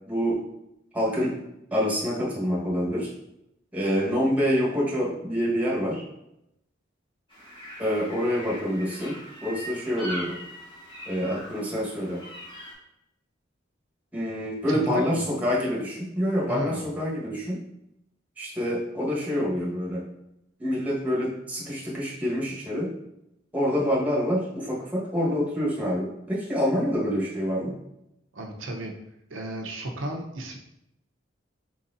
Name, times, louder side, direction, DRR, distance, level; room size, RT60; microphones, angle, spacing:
voice 1, 0.1-0.4 0.9-1.4 1.7-3.1 3.7-6.0 7.8-9.2 9.4-10.4 11.0-12.2 14.1-17.6 18.4-20.0 20.6-22.9 23.5-27.7, equal, 10° right, -6 dB, 1.3 m, -26 dB
sound 1, 7.3-12.7, right 1 dB, 25° left, 1.7 m, -41 dB
voice 2, 14.7-15.2 16.5-16.9 28.3-28.9 29.3-30.6, right 1 dB, 90° right, 2 dB, 0.8 m, -34 dB
4.6 x 4.0 x 2.6 m, 0.83 s
head